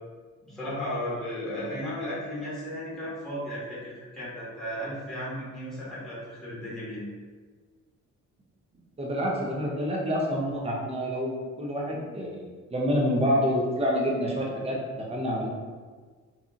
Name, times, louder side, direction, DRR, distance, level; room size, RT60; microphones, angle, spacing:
voice 1, 0.4-7.0, equal, ahead, -10 dB, 1.4 m, -35 dB
voice 2, 9.0-15.5, equal, 20° right, -3 dB, 0.7 m, -28 dB
2.7 x 2.5 x 2.5 m, 1.5 s
cardioid pair, 90°, 30 cm